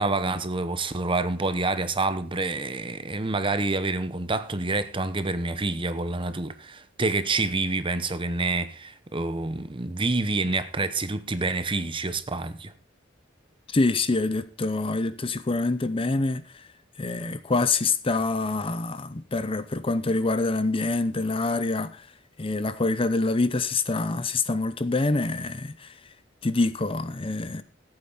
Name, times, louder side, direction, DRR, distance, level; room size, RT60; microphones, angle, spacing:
voice 1, 0.0-12.7, right 3 dB, 25° right, 0.9 m, -27 dB
voice 2, 13.7-16.4 17.0-21.9 22.4-25.9 26.4-27.6, left 3 dB, 30° left, 0.7 m, -26 dB
15.5 x 8.8 x 4.0 m
head